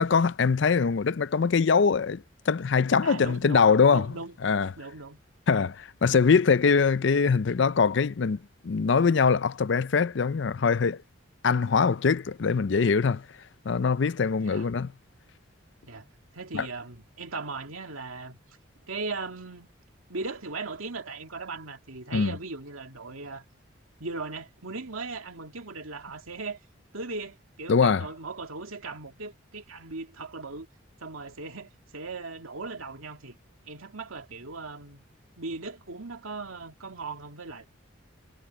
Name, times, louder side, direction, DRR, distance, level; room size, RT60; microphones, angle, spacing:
voice 1, 0.0-4.1 4.4-4.7 5.5-8.4 8.6-11.0 11.4-13.2 13.6-14.9 16.5-16.7 22.1-22.3 27.7-28.1, left 5 dB, 60° left, 0.5 m, -23 dB
voice 2, 3.0-4.3 4.8-5.2 14.4-14.7 15.8-16.1 16.3-18.4 18.9-19.7 20.1-23.4 24.0-26.6 26.9-30.7 31.0-33.4 33.6-35.0 35.4-37.7, right 3 dB, 90° right, 2.5 m, -38 dB
head